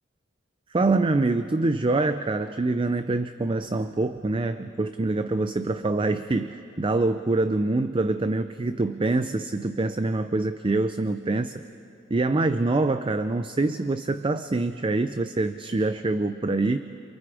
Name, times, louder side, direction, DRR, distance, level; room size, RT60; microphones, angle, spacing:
voice 1, 0.7-11.6 12.1-16.8, right 2 dB, 25° right, 10 dB, 0.5 m, -25 dB
28.5 x 27.5 x 4.9 m, 2.8 s
head